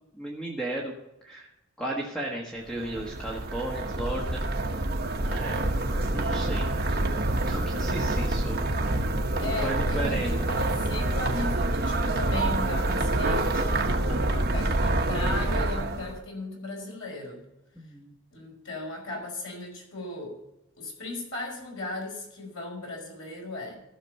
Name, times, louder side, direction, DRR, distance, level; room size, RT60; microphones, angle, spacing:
voice 1, 0.1-0.9 1.2-1.5 1.8-4.4 5.2-7.0 7.5-8.6 9.6-10.3 14.1-14.5 17.7-18.1, right 1 dB, 5° left, -3 dB, 1.4 m, -35 dB
sound 1, 2.7-16.2, right 2 dB, 50° right, 1.1 m, -27 dB
voice 2, 9.4-13.9 14.3-17.4 18.3-20.4 20.8-23.8, left 2 dB, 70° left, 0 dB, 5.4 m, -36 dB
15.5 x 6.4 x 5.5 m, 0.89 s
head